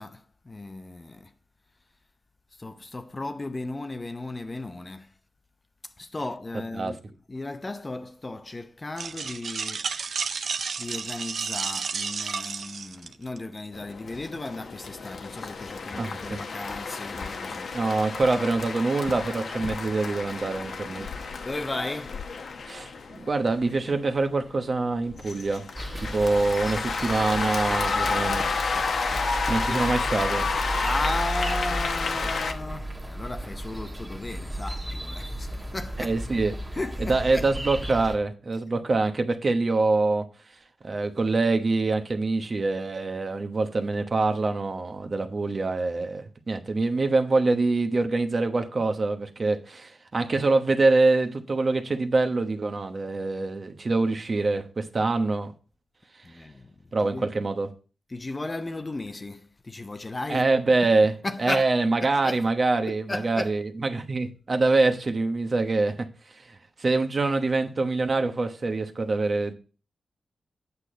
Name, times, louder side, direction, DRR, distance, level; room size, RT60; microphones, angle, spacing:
voice 1, 0.0-1.3 2.6-5.1 6.0-9.9 10.8-17.7 21.4-22.2 29.5-29.8 30.8-36.2 36.7-37.5 56.2-56.7 57.0-57.4 58.1-60.5 61.2-61.7 62.2-62.5 62.8-63.5, left 2 dB, 25° left, 0.7 m, -35 dB
sound 1, 9.0-13.4, right 5 dB, 70° right, 0.6 m, -31 dB
sound 2, 13.7-32.5, left 4 dB, 65° left, 1.0 m, -31 dB
voice 2, 15.9-16.4 17.7-21.1 22.7-25.6 26.0-28.4 29.5-30.5 36.0-36.5 37.0-40.3 40.8-55.5 56.9-57.7 60.3-61.1 61.4-69.5, right 3 dB, 40° right, 1.0 m, -25 dB
sound 3, 25.7-38.2, right 1 dB, 10° right, 1.5 m, -34 dB
8.3 x 6.7 x 4.3 m
wide cardioid pair, 105°, 0 cm